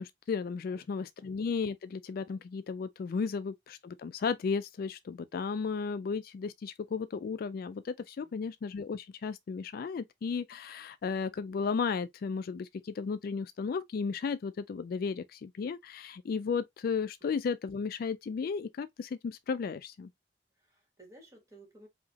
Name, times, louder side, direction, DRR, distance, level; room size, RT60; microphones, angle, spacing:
voice 1, 0.0-20.1, left 5 dB, 55° left, 0.3 m, -34 dB
voice 2, 20.5-21.9, right 1 dB, 15° right, 2.3 m, -56 dB
4.9 x 2.8 x 2.8 m
head